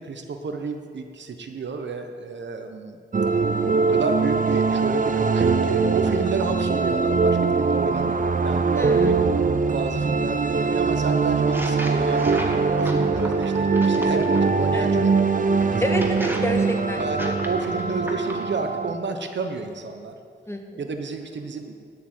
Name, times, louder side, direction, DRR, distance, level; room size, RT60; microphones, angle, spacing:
voice 1, 0.0-3.0 3.8-9.1 9.7-12.2 12.7-15.1 15.5-16.0 16.9-20.1 20.8-21.7, right 4 dB, 80° right, 5 dB, 1.1 m, -31 dB
sound 1, 3.1-19.0, right 4 dB, 45° right, 0.7 m, -22 dB
voice 2, 8.7-9.2 14.7-14.9 15.8-17.0 20.5-20.8, left 1 dB, 15° left, 3 dB, 1.6 m, -28 dB
sound 2, 11.4-14.5 15.2-18.5, right 1 dB, 10° right, 1.7 m, -37 dB
10.0 x 8.1 x 9.1 m, 2.1 s
cardioid pair, 75°, 19 cm